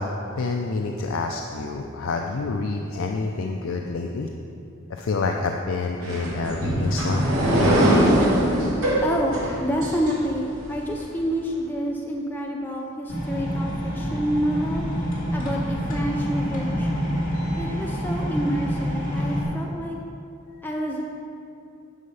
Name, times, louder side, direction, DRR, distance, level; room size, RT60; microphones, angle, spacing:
voice 1, 0.0-4.3 4.9-7.7 17.3-17.6, left 3 dB, 75° left, 2 dB, 0.5 m, -28 dB
sound 1, 6.0-10.7, equal, 75° right, 2.2 m, -22 dB
voice 2, 9.0-14.9 15.3-17.2 17.6-20.0 20.6-21.0, equal, 10° left, -1 dB, 0.5 m, -28 dB
sound 2, 13.1-19.4, equal, 40° left, 2.1 m, -27 dB
9.8 x 5.7 x 5.5 m, 2.7 s
head